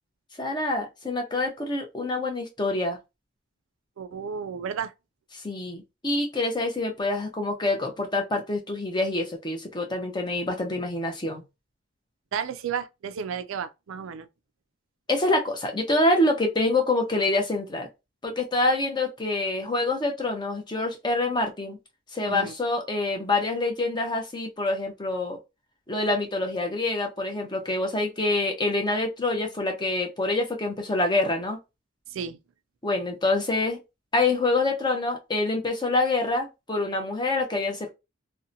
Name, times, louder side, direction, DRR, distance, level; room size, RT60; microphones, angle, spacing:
voice 1, 0.4-3.0 5.4-11.4 15.1-17.9 18.2-21.8 22.1-25.4 25.9-31.6 32.8-33.8 34.1-37.9, left 2 dB, 20° left, 0.6 m, -26 dB
voice 2, 4.0-4.9 12.3-14.3 22.2-22.5 32.1-32.4, right 7 dB, 80° right, 0.4 m, -32 dB
2.7 x 2.1 x 2.6 m
head